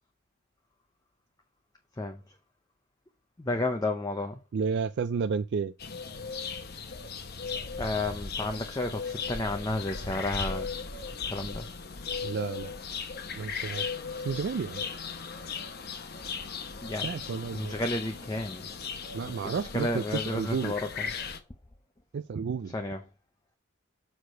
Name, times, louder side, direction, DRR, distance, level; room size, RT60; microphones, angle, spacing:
voice 1, 3.4-4.4 7.8-10.7 11.3-11.7 16.8-17.1 17.5-18.7 19.4-21.1 22.7-23.0, left 2 dB, 15° left, 0.5 m, -32 dB
voice 2, 4.5-5.7 12.2-12.7 13.3-13.8 14.2-14.8 17.0-17.7 19.1-20.7 22.1-22.7, right 5 dB, 50° right, 0.3 m, -31 dB
Cyprus dawn chorus, 5.8-21.4, left 5 dB, 45° left, 0.9 m, -37 dB
6.6 x 4.6 x 5.1 m
head